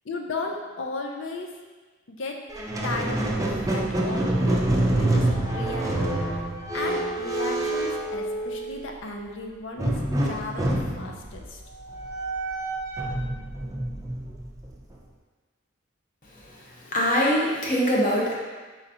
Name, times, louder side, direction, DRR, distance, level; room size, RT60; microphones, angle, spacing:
voice 1, 0.1-1.5 2.2-2.4 2.8-4.6 5.0-5.9 6.7-9.9 10.2-11.6, left 3 dB, 65° left, 2 dB, 0.5 m, -35 dB
Squeak, 2.5-8.8 9.8-15.0, right 1 dB, 15° right, 0.4 m, -27 dB
voice 2, 16.9-18.3, equal, 40° left, -4 dB, 0.9 m, -22 dB
4.3 x 3.9 x 2.8 m, 1.3 s
head